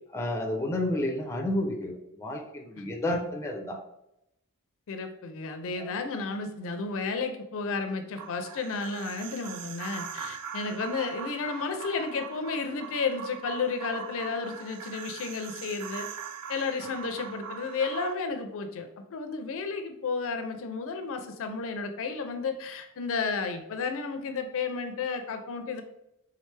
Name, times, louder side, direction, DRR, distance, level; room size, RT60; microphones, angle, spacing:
voice 1, 0.1-3.8 5.8-5.9, left 1 dB, 10° left, 2 dB, 0.5 m, -31 dB
voice 2, 4.9-16.1 16.5-25.8, left 4 dB, 65° left, 7 dB, 0.5 m, -32 dB
sound 1, 8.2-18.1, right 8 dB, 90° right, 0.3 m, -41 dB
3.7 x 3.2 x 3.2 m, 0.84 s
head